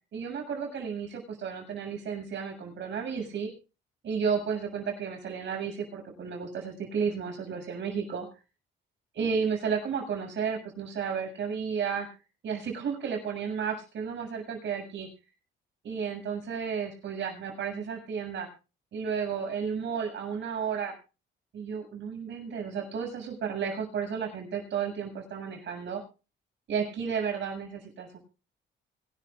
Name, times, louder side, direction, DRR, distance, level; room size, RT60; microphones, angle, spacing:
voice 1, 0.1-3.5 4.0-8.3 9.1-12.1 12.4-15.1 15.8-18.5 18.9-20.9 21.5-26.0 26.7-28.2, right 6 dB, 65° right, 2 dB, 7.3 m, -32 dB
25.0 x 12.5 x 2.5 m, 0.33 s
cardioid pair, 90°, 20 cm